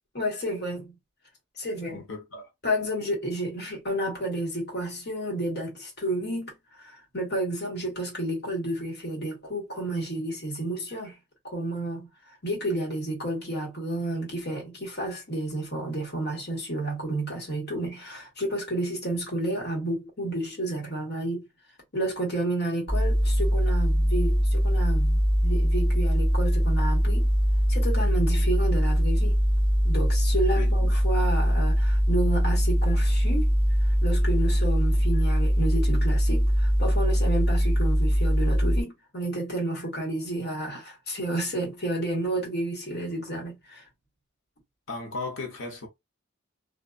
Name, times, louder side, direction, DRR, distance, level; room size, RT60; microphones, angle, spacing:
voice 1, 0.1-0.9 1.6-2.0 2.6-11.2 11.4-12.1 12.4-21.4 21.9-27.3 27.7-29.4 29.8-33.5 33.8-43.8, right 1 dB, 55° left, 1.5 m, -31 dB
voice 2, 1.9-2.5 30.5-30.9 44.9-45.9, left 3 dB, 80° left, 1.0 m, -36 dB
sound 1, 22.9-38.8, equal, 25° left, 1.1 m, -22 dB
2.5 x 2.5 x 2.3 m
head